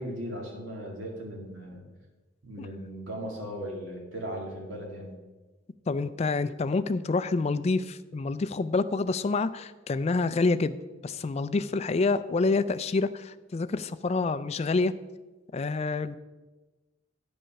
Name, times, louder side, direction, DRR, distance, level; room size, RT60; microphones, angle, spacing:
voice 1, 0.0-1.8 2.4-5.2, equal, 90° right, -1 dB, 2.3 m, -37 dB
voice 2, 5.9-10.8 11.0-14.9 15.5-16.2, left 3 dB, 35° left, 13 dB, 0.3 m, -27 dB
9.9 x 5.4 x 5.8 m, 1.2 s
head